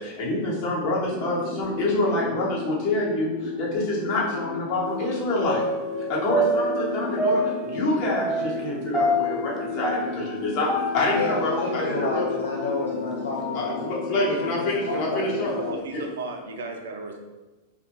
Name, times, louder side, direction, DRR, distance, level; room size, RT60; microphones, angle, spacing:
voice 1, 0.0-5.6 6.1-10.7 10.9-12.2 13.5-15.5 15.9-16.0, left 1 dB, 45° left, -4 dB, 0.8 m, -27 dB
sound 1, 1.1-15.8, left 4 dB, 90° left, 0.8 m, -34 dB
sound 2, 5.4-12.6 13.1-14.4 14.8-14.9, equal, 5° left, 0.5 m, -28 dB
voice 2, 11.1-13.8 14.3-15.7, left 2 dB, 70° left, -4 dB, 0.3 m, -30 dB
voice 3, 15.5-17.2, right 3 dB, 60° right, 3 dB, 0.4 m, -35 dB
2.4 x 2.1 x 2.8 m, 1.1 s
figure-of-eight pair, 90°, 0 cm